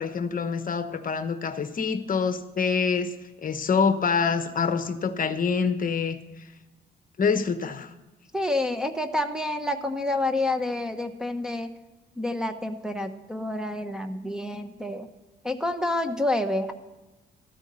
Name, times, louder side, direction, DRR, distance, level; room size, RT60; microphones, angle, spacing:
voice 1, 0.0-3.1 3.4-6.2 7.2-7.9, left 5 dB, 45° left, 9 dB, 1.0 m, -26 dB
voice 2, 8.3-11.7 12.2-15.1 15.4-16.7, left 1 dB, 5° right, 3 dB, 1.1 m, -28 dB
14.0 x 9.0 x 5.5 m, 1.1 s
cardioid pair, 90°, 20 cm